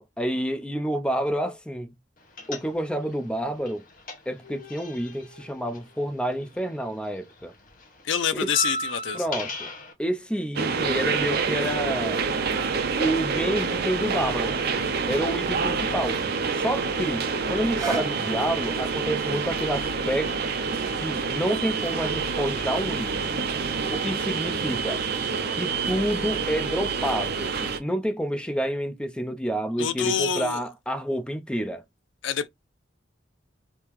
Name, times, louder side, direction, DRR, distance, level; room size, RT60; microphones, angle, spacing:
voice 1, 0.0-1.9 2.5-3.8 4.3-7.5 8.3-8.5 9.1-9.7 10.0-12.2 13.0-14.6 15.1-16.2 16.5-20.5 21.0-23.4 23.9-25.0 25.5-31.8, right 1 dB, 5° left, 0.4 m, -29 dB
sound 1, 2.4-3.1 3.4-6.8 7.0-9.9, left 1 dB, 45° left, 1.0 m, -36 dB
voice 2, 8.0-9.2 29.8-30.6 32.2-32.5, left 8 dB, 80° left, 0.5 m, -26 dB
sound 2, 10.6-27.8, right 5 dB, 55° right, 0.5 m, -27 dB
sound 3, 17.5-23.6 24.3-24.4, right 5 dB, 20° right, 1.5 m, -41 dB
3.6 x 2.8 x 3.0 m
head